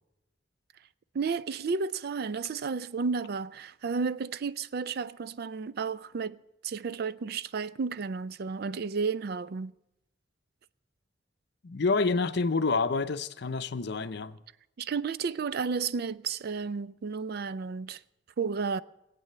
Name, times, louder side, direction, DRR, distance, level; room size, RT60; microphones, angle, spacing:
voice 1, 1.1-6.4 6.6-9.7 14.8-18.0 18.4-18.8, right 5 dB, 55° right, 0.4 m, -32 dB
voice 2, 11.6-14.4, left 4 dB, 60° left, 0.6 m, -28 dB
19.5 x 8.4 x 6.7 m
head